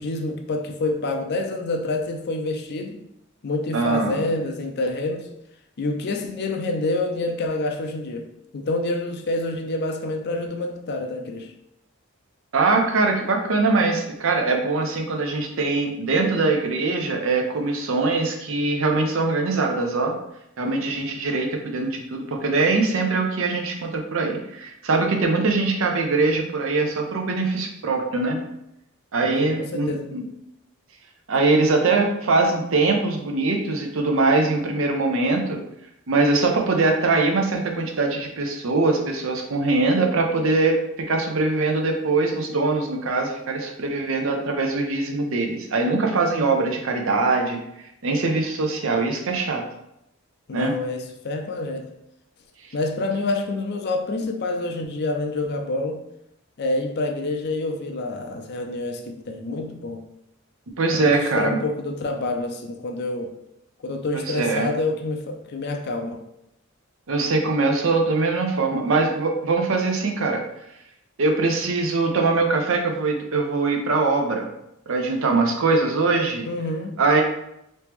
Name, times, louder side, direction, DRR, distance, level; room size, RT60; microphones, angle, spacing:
voice 1, 0.0-3.0 3.4-5.3 5.8-8.3 8.5-11.5 29.2-30.1 50.5-51.9 52.7-56.0 56.6-60.0 60.9-63.3 63.8-66.2 76.4-77.0, left 2 dB, 50° left, 0.5 m, -27 dB
voice 2, 3.7-4.2 12.5-20.2 20.6-28.4 29.1-30.2 31.3-35.6 36.1-47.6 48.0-49.6 50.5-50.7 60.8-61.6 64.1-64.7 67.1-70.4 71.2-74.5 74.9-76.5 77.0-77.2, right 3 dB, 65° right, 0.6 m, -22 dB
3.1 x 3.0 x 3.4 m
head